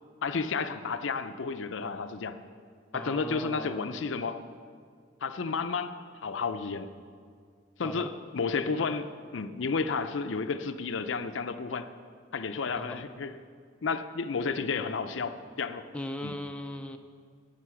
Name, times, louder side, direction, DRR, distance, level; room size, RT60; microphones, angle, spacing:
voice 1, 0.2-2.4 2.9-4.4 5.2-5.9 6.2-6.9 7.8-11.9 12.3-13.3 13.8-15.8 16.2-16.3, left 4 dB, 70° left, 10 dB, 0.5 m, -32 dB
voice 2, 2.9-4.0 7.8-8.1 12.8-13.0 15.9-17.0, left 1 dB, 5° left, 4 dB, 0.4 m, -39 dB
11.0 x 9.0 x 5.8 m, 2.1 s
head